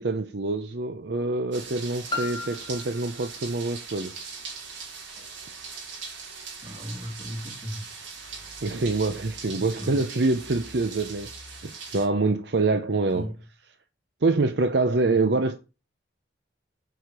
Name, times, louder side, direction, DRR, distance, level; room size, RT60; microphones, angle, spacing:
voice 1, 0.0-4.2 8.6-13.3 14.2-15.6, right 3 dB, 65° right, 0.7 m, -25 dB
sound 1, 1.5-12.1, right 5 dB, 80° right, 3.0 m, -40 dB
Piano, 2.1-7.5 8.3-8.4, left 3 dB, 25° left, 1.2 m, -40 dB
voice 2, 6.6-7.9 8.4-8.5 9.5-10.0 13.1-13.3 15.0-15.2, equal, 30° right, 2.3 m, -36 dB
7.9 x 4.9 x 6.8 m
head